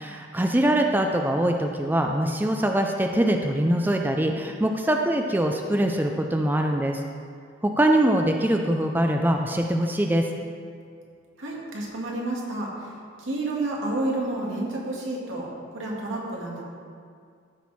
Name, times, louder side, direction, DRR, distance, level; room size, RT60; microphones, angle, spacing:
voice 1, 0.0-7.0 7.6-10.3, right 1 dB, 10° right, 3 dB, 0.4 m, -23 dB
voice 2, 11.4-12.9 13.2-15.5 15.7-16.6, right 2 dB, 90° right, -3 dB, 2.1 m, -30 dB
13.5 x 6.2 x 4.2 m, 2.2 s
head